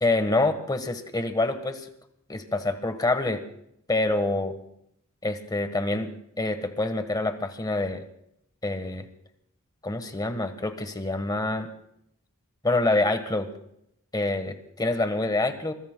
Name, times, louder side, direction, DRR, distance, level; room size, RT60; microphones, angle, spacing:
voice 1, 0.0-1.9 2.3-3.4 3.9-4.5 5.2-8.0 8.6-9.1 9.8-11.7 12.6-13.5 14.1-15.7, left 2 dB, 20° left, 8 dB, 1.3 m, -26 dB
25.0 x 22.5 x 2.2 m, 0.75 s
head